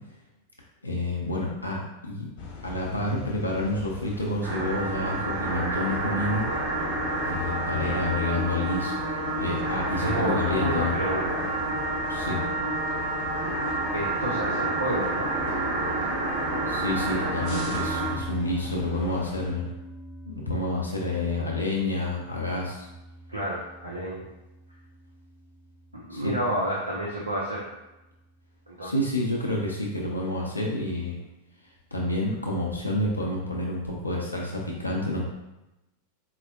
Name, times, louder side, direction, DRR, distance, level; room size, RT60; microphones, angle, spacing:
voice 1, 0.8-2.3 2.6-6.5 7.2-9.0 9.3-11.0 12.1-12.4 16.7-19.7 20.3-22.9 26.1-26.3 28.8-31.2 31.9-35.2, left 1 dB, 85° left, -3 dB, 0.5 m, -29 dB
sound 1, 2.4-19.5, left 3 dB, 45° left, 0.6 m, -41 dB
sound 2, 4.4-18.2, right 2 dB, 35° right, 1.1 m, -29 dB
voice 2, 10.0-11.4 13.9-15.3 23.3-24.3 25.9-27.6 28.7-28.9, right 1 dB, 80° right, -5 dB, 0.5 m, -30 dB
sound 3, 17.7-28.2, right 1 dB, 5° right, 0.6 m, -43 dB
4.2 x 2.0 x 2.6 m, 0.99 s
figure-of-eight pair, 90°, 0 cm